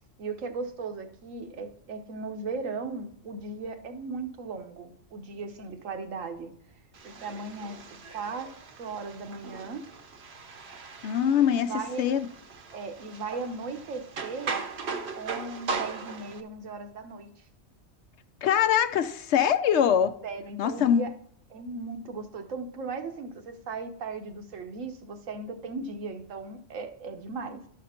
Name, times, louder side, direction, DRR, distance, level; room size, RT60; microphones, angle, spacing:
voice 1, 0.2-6.5 7.0-7.8 8.1-8.5 8.8-9.8 11.5-12.0 12.7-14.6 15.1-17.3 20.2-21.1 21.5-27.6, right 4 dB, 80° right, 1.3 m, -37 dB
sound 1, 6.9-16.4, right 4 dB, 60° right, 0.9 m, -39 dB
voice 2, 11.0-11.7 12.0-12.3 18.4-20.2 20.6-21.1, left 9 dB, 70° left, 0.8 m, -23 dB
12.0 x 5.0 x 4.3 m
omnidirectional pair, 1.3 m